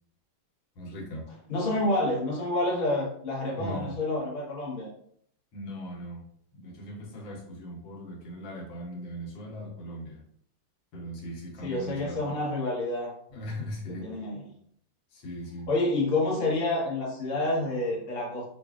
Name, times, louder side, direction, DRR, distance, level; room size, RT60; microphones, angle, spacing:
voice 1, 0.8-1.3 3.5-3.9 5.5-6.2 6.5-10.2 10.9-12.4 13.3-14.1 15.1-15.7, equal, 80° left, -1 dB, 1.6 m, -39 dB
voice 2, 1.5-4.9 11.6-13.1 13.9-14.4 15.7-18.4, left 2 dB, 40° left, -4 dB, 1.0 m, -28 dB
5.3 x 2.3 x 2.4 m, 0.66 s
omnidirectional pair, 2.1 m